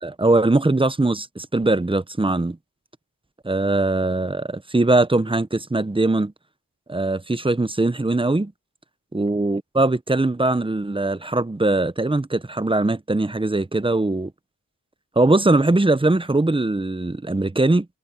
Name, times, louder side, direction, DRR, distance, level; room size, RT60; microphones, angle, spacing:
voice 1, 0.0-2.6 3.4-6.3 6.9-8.5 9.1-14.3 15.2-17.9, right 2 dB, 15° right, 0.7 m, -21 dB
wide cardioid pair, 70°, 36 cm